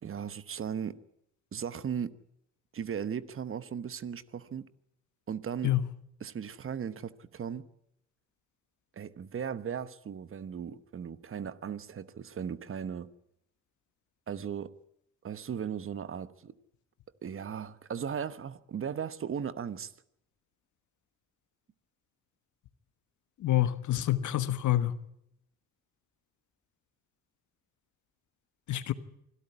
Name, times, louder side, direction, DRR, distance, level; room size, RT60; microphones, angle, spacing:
voice 1, 0.0-1.0 1.5-2.1 2.7-4.7 5.3-5.7 6.2-7.6 9.0-13.1 14.3-14.7 15.2-16.5 17.2-19.9, right 7 dB, 45° right, 1.2 m, -37 dB
voice 2, 23.4-25.0 28.7-28.9, left 14 dB, 75° left, 1.4 m, -27 dB
25.0 x 13.0 x 9.8 m
cardioid pair, 90°, 30 cm